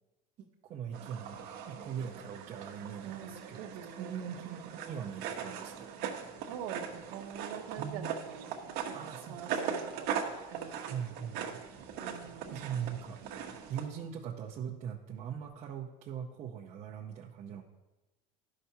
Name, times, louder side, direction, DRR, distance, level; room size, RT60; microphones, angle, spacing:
voice 1, 0.4-1.4 1.7-3.6 4.0-5.9 7.8-8.1 8.9-9.4 10.8-11.6 12.5-13.2 13.7-17.6, right 8 dB, 35° right, -4 dB, 0.7 m, -41 dB
sound 1, 0.9-13.9, right 7 dB, 55° right, 1.0 m, -40 dB
voice 2, 3.0-4.2 6.5-10.1 10.5-11.6 12.0-12.5, right 8 dB, 80° right, 0 dB, 0.8 m, -45 dB
12.5 x 5.7 x 2.8 m, 1.1 s
cardioid pair, 145°, 19 cm